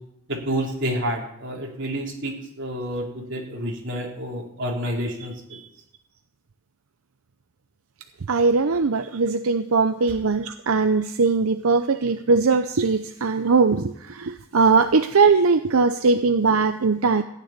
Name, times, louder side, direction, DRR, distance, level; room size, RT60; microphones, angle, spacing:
voice 1, 0.3-5.6, equal, 55° right, -1 dB, 3.7 m, -29 dB
voice 2, 8.3-17.2, right 4 dB, 90° right, 8 dB, 0.7 m, -20 dB
15.0 x 6.8 x 9.6 m, 0.74 s
head